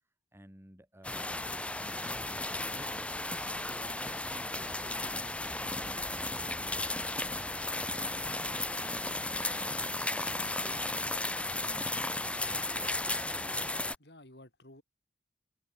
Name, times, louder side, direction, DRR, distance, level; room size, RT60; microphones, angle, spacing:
voice 1, 0.3-3.1 3.6-13.1, equal, 15° right, 6.5 m, -55 dB
sound 1, 1.0-14.0, left 2 dB, 5° left, 1.4 m, -35 dB
voice 2, 13.6-14.8, left 1 dB, 65° left, 5.6 m, -55 dB
head